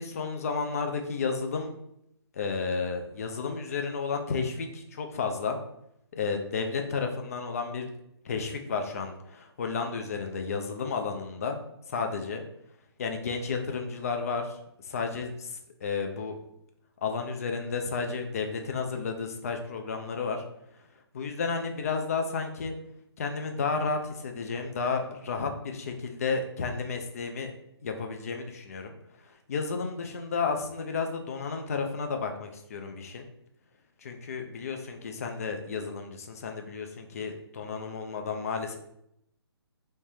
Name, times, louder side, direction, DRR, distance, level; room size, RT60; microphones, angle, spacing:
voice 1, 0.0-1.7 2.3-5.6 6.1-7.9 8.2-11.6 11.9-12.4 13.0-16.4 17.0-20.4 21.1-22.8 23.2-27.5 27.8-28.9 29.2-33.3 34.0-38.8, left 5 dB, 35° left, 4 dB, 0.5 m, -32 dB
3.2 x 2.8 x 3.3 m, 0.77 s
figure-of-eight pair, 140°, 14 cm